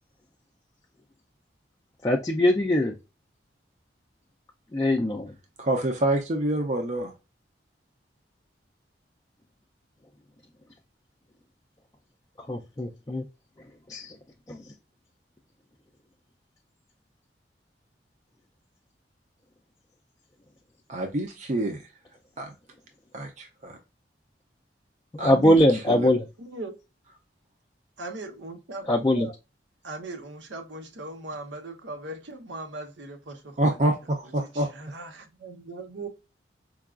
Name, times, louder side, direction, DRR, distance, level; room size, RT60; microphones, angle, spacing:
voice 1, 2.0-2.9 4.7-5.3 12.5-13.2 13.9-14.1 14.5-14.6 25.2-26.2 28.9-29.3, left 1 dB, 20° left, 0.3 m, -22 dB
voice 2, 5.6-7.1 20.9-21.8 22.4-22.5 23.1-23.8 25.2-26.1 33.6-35.0, right 1 dB, 40° right, 0.5 m, -27 dB
voice 3, 26.4-26.7 28.0-29.3 29.8-33.8 34.4-36.1, right 2 dB, 85° right, 0.8 m, -39 dB
4.6 x 2.3 x 2.3 m
head